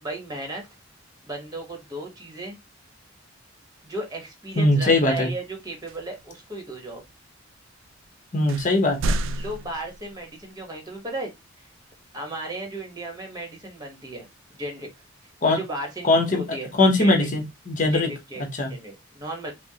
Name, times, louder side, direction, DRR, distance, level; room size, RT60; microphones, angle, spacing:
voice 1, 0.0-0.7 1.2-2.6 3.8-7.0 9.4-11.3 11.6-11.7 12.1-14.3 14.5-14.9 15.4-16.7 17.0-17.3 17.9-18.4 18.7-19.5, right 1 dB, 20° right, 2 dB, 1.1 m, -35 dB
sound 1, 4.5-4.8 5.9-6.3 6.9-7.0 7.9-8.0 8.5-10.4, right 2 dB, 65° right, 0.3 m, -30 dB
voice 2, 4.6-5.3 8.3-9.2 15.4-15.6 16.0-16.4 16.7-18.1 18.5-18.7, left 2 dB, 40° left, 3 dB, 1.0 m, -20 dB
5.1 x 2.1 x 2.8 m, 0.21 s
head